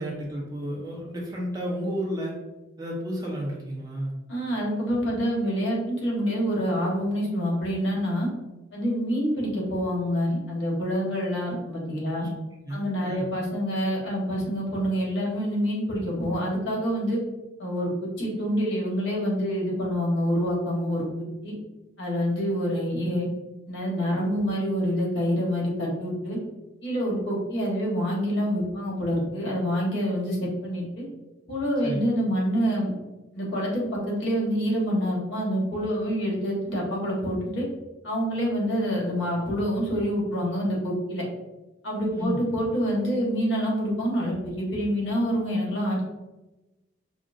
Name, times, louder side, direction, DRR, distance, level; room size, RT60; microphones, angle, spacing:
voice 1, 0.0-2.3 2.8-4.1 12.0-12.2 12.6-13.2 31.8-32.0 42.1-42.4, equal, 20° right, -4 dB, 1.0 m, -32 dB
voice 2, 4.3-8.3 8.7-12.2 12.7-17.2 17.6-21.5 22.0-23.3 23.7-26.4 26.8-31.0 31.5-32.9 33.3-37.7 38.0-41.2 41.8-46.0, equal, 65° left, -3 dB, 1.3 m, -27 dB
5.1 x 2.1 x 2.6 m, 1.1 s
head